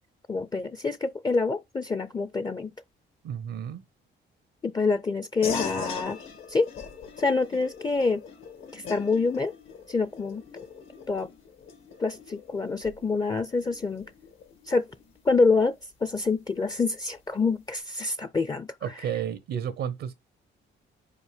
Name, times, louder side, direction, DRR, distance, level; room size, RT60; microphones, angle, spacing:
voice 1, 0.3-2.7 4.6-6.2 6.5-6.7 7.2-8.2 8.7-9.5 9.9-10.4 11.1-11.3 12.0-14.1 14.7-14.9 15.2-19.1, left 4 dB, 20° left, 0.4 m, -26 dB
voice 2, 3.2-3.8 18.8-20.1, right 9 dB, 85° right, 0.9 m, -32 dB
sound 1, 5.4-15.3, left 6 dB, 75° left, 1.8 m, -40 dB
5.4 x 4.3 x 4.9 m
cardioid pair, 90°, 20 cm